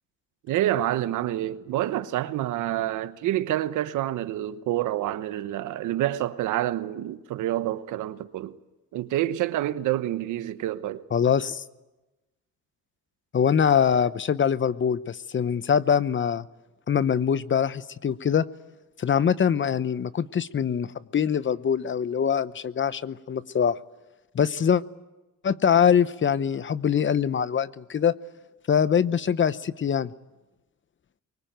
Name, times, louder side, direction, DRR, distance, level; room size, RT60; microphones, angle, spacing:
voice 1, 0.5-8.6 8.9-11.0, right 13 dB, 85° right, 1.1 m, -28 dB
voice 2, 11.1-11.6 13.3-16.4 16.9-18.5 19.0-23.8 24.3-24.8 25.4-28.1 28.7-30.1, left 7 dB, 40° left, 0.9 m, -23 dB
23.5 x 20.5 x 9.3 m
cardioid pair, 90°, 30 cm